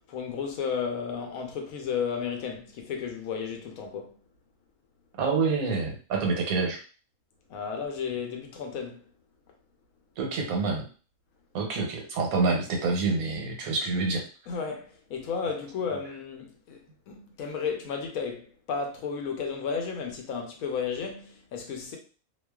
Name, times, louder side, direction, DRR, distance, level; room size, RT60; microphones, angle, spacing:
voice 1, 0.0-4.2 7.5-9.0 14.5-22.0, left 6 dB, 85° left, 1.0 m, -33 dB
voice 2, 5.2-6.8 10.2-10.9 11.5-14.2, right 4 dB, 90° right, 1.2 m, -27 dB
2.4 x 2.3 x 2.3 m
omnidirectional pair, 1.4 m